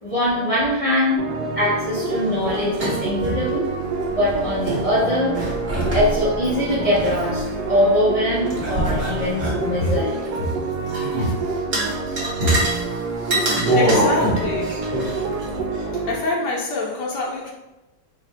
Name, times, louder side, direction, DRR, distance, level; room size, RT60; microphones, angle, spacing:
voice 1, 0.0-1.2 1.6-3.7 4.1-5.4 5.9-10.2, left 1 dB, 50° left, -8 dB, 0.4 m, -22 dB
sound 1, 1.2-16.2, right 3 dB, 75° right, 1.0 m, -28 dB
sound 2, 2.3-3.5 3.8-3.9 4.2-4.8 5.3-7.9 8.4-10.5 10.9-11.3 11.7-12.8 13.2-15.9, right 1 dB, 40° right, 1.0 m, -24 dB
voice 2, 13.7-14.9 16.1-17.5, left 2 dB, 70° left, -3 dB, 1.2 m, -25 dB
3.2 x 2.9 x 4.1 m, 1.1 s
omnidirectional pair, 2.0 m